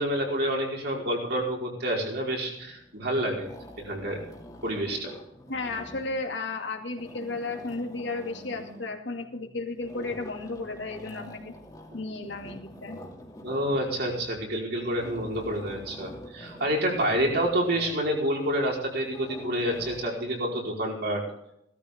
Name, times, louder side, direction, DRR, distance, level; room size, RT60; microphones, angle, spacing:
voice 1, 0.0-3.5 3.8-4.2 4.6-5.1 13.4-21.2, right 1 dB, 55° right, -2 dB, 4.9 m, -28 dB
sound 1, 2.6-3.0 3.3-6.4 6.8-9.0 9.8-20.1, equal, 20° left, 2.5 m, -46 dB
voice 2, 5.5-11.5 11.9-13.0, left 3 dB, 70° left, 3 dB, 2.3 m, -34 dB
17.0 x 13.0 x 3.7 m, 0.78 s
head